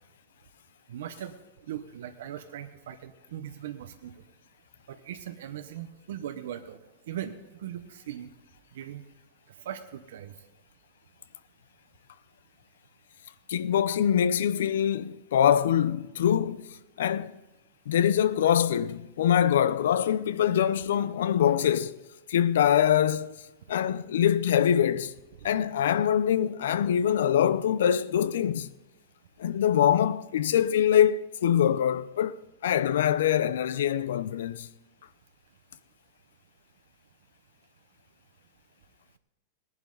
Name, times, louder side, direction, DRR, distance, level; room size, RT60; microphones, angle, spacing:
voice 1, 0.9-1.3 1.7-4.1 4.9-6.8 7.1-8.3 8.7-9.0 9.6-10.3, right 10 dB, 70° right, 0.9 m, -39 dB
voice 2, 13.5-17.3 17.9-22.0 22.3-23.3 23.7-25.1 25.4-28.7 29.4-34.7, left 9 dB, 80° left, 0.5 m, -24 dB
18.0 x 11.0 x 3.9 m
supercardioid pair, 175°, 0 cm